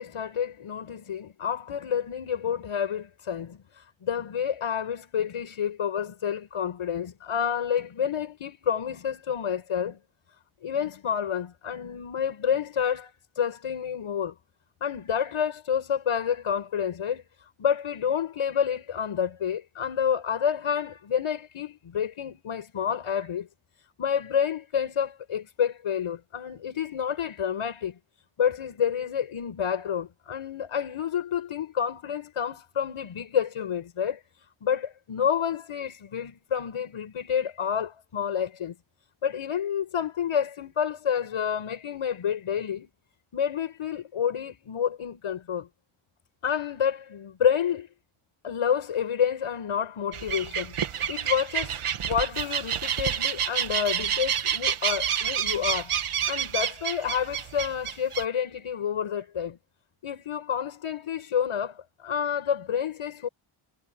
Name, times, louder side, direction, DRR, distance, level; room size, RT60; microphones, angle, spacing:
voice 1, 0.0-10.0 10.6-14.3 14.8-23.5 24.0-28.0 28.4-34.2 34.6-38.8 39.2-42.9 43.3-45.7 46.4-47.9 48.4-55.9 56.3-59.6 60.0-63.3, left 8 dB, 90° left, 6.4 m, -29 dB
sound 1, 50.1-58.2, right 9 dB, 85° right, 1.8 m, -29 dB
wide cardioid pair, 175°, 49 cm